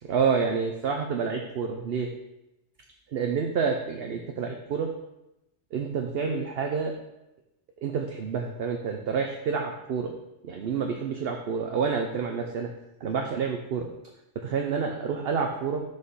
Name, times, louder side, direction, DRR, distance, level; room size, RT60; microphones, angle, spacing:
voice 1, 0.0-2.1 3.1-4.9 5.7-6.9 7.8-10.1 10.4-12.7 13.0-13.9 14.4-15.8, right 5 dB, 60° right, 3 dB, 0.9 m, -28 dB
6.3 x 5.0 x 5.5 m, 0.90 s
omnidirectional pair, 1.3 m